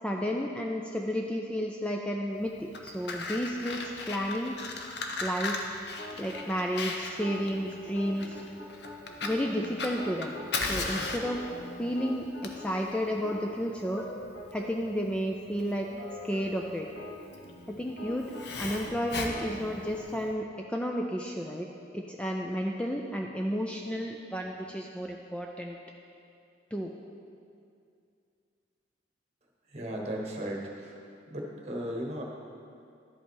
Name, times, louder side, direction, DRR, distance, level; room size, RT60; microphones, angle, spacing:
voice 1, 0.0-4.6 5.2-5.6 6.2-8.4 9.2-10.3 10.7-11.4 11.8-14.0 14.5-15.9 16.2-16.9 17.7-18.3 18.6-21.7 21.9-25.8 26.7-26.9, equal, 5° left, 1 dB, 0.3 m, -32 dB
Fire, 2.5-20.3, left 3 dB, 60° left, 0.8 m, -37 dB
sound 1, 6.0-6.5 7.1-10.5 11.1-14.7 15.0-15.1 15.5-20.0, left 2 dB, 90° left, 1.3 m, -44 dB
voice 2, 29.7-30.9 31.3-32.2, equal, 35° right, -1 dB, 1.1 m, -36 dB
11.5 x 5.5 x 4.6 m, 2.5 s
head